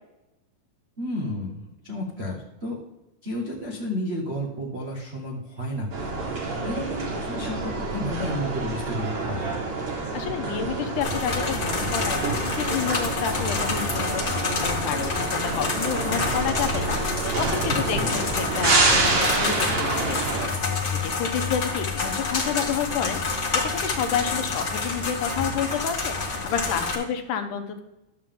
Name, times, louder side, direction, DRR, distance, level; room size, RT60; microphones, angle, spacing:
voice 1, 1.0-2.8 3.2-9.6 17.7-18.2, equal, 80° right, -4 dB, 0.5 m, -32 dB
sound 1, 5.9-20.5, right 3 dB, 50° right, 2.5 m, -27 dB
voice 2, 10.0-20.4 21.0-27.8, left 8 dB, 75° left, 7 dB, 2.2 m, -30 dB
sound 2, 11.0-26.9, left 4 dB, 45° left, 0.9 m, -28 dB
11.5 x 7.4 x 3.7 m, 0.94 s
omnidirectional pair, 3.9 m